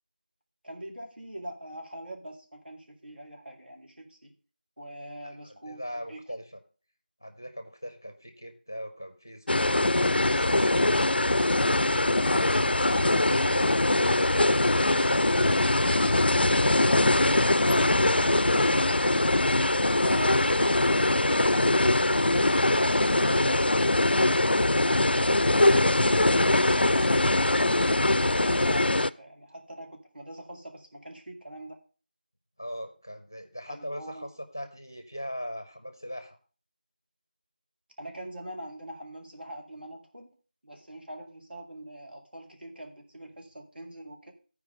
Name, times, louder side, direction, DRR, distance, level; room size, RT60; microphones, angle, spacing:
voice 1, 0.6-4.3 4.8-5.8 6.1-6.2 20.0-20.4 28.2-31.8 33.7-34.2 38.0-40.3 40.6-44.3, equal, 75° right, 2 dB, 2.2 m, -42 dB
voice 2, 5.2-6.6 7.2-10.8 11.8-19.2 20.7-22.0 22.5-27.6 32.6-36.4, equal, 20° left, 7 dB, 0.6 m, -39 dB
sound 1, 9.5-29.1, left 2 dB, 85° left, 0.3 m, -22 dB
13.5 x 4.8 x 4.8 m, 0.37 s
figure-of-eight pair, 180°, 5 cm